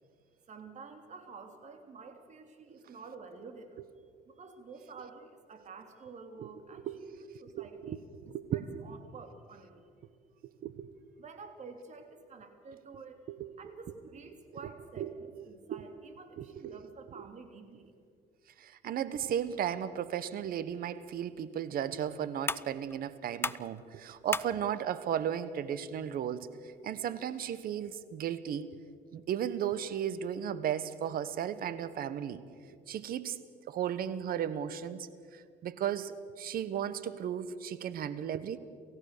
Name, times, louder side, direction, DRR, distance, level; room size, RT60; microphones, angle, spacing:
voice 1, 0.5-3.8 4.3-6.9 7.2-8.0 8.2-9.9 11.2-13.2 13.6-17.9, right 4 dB, 45° right, 6 dB, 3.0 m, -50 dB
voice 2, 6.4-7.0 7.6-8.6 10.6-10.9 13.3-13.5 15.0-15.1 15.7-15.8 16.4-16.8 17.1-17.2 18.6-26.5 26.8-28.7 29.1-32.4 32.9-33.4 33.7-38.6, right 9 dB, 60° right, 15 dB, 1.2 m, -35 dB
sound 1, 20.9-27.9, left 3 dB, 15° left, 0.5 m, -42 dB
28.5 x 15.5 x 6.7 m, 2.3 s
cardioid pair, 110°, 17 cm